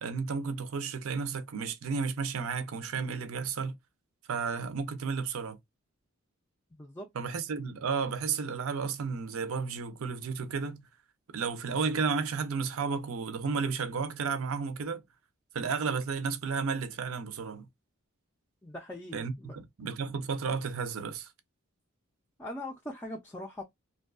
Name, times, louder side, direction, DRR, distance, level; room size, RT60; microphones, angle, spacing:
voice 1, 0.0-3.7 4.3-5.6 7.1-10.8 11.3-15.0 15.5-17.7 19.1-21.3, right 5 dB, 70° right, 0.5 m, -32 dB
voice 2, 6.7-7.1 18.6-19.6 22.4-23.6, left 1 dB, 10° left, 0.3 m, -41 dB
2.6 x 2.2 x 2.3 m
head